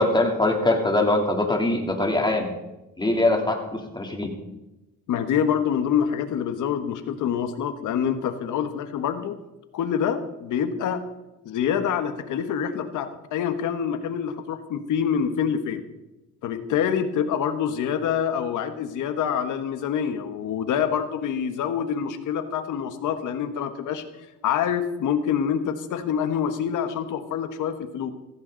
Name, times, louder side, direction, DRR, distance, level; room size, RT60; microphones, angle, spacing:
voice 1, 0.0-2.5 3.0-4.3, left 2 dB, 15° left, 2 dB, 3.3 m, -22 dB
voice 2, 5.1-9.3 9.7-11.1 11.4-15.8 16.4-24.0 24.4-28.1, left 8 dB, 85° left, 9 dB, 1.5 m, -26 dB
16.0 x 15.5 x 4.1 m, 0.98 s
cardioid pair, 90°, 30 cm